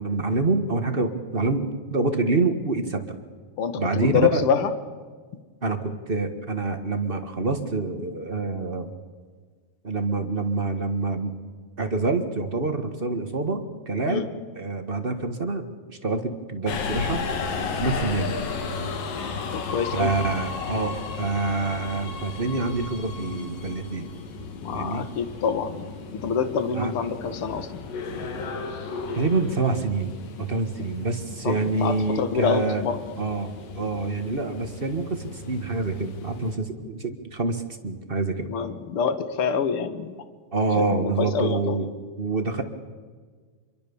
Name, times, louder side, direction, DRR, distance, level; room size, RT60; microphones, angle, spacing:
voice 1, 0.0-3.2 3.8-4.4 5.6-8.9 9.8-11.3 11.8-14.3 14.5-17.2 17.8-18.4 19.9-24.1 24.7-25.1 26.7-26.9 29.1-32.8 33.2-38.5 40.5-41.9 42.2-42.6, right 3 dB, 40° right, 6 dB, 0.7 m, -26 dB
voice 2, 3.6-4.7 14.1-14.2 19.5-20.1 24.6-25.9 26.2-27.7 31.4-33.0 38.5-40.1 40.9-41.8, left 6 dB, 50° left, 10 dB, 2.1 m, -26 dB
Subway metro underground, 16.7-36.6, left 4 dB, 80° left, 3.9 m, -34 dB
27.0 x 23.5 x 7.2 m, 1.5 s
omnidirectional pair, 3.8 m